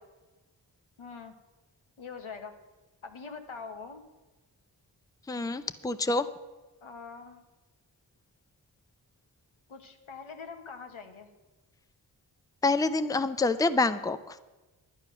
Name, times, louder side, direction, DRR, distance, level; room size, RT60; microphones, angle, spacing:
voice 1, 1.0-1.4 2.0-2.6 3.0-4.1 6.8-7.4 9.7-11.3, left 5 dB, 90° left, 5 dB, 1.3 m, -43 dB
voice 2, 5.3-6.3 12.6-14.4, left 3 dB, 10° left, 11 dB, 0.5 m, -27 dB
11.0 x 9.5 x 6.2 m, 1.1 s
cardioid pair, 50°, 47 cm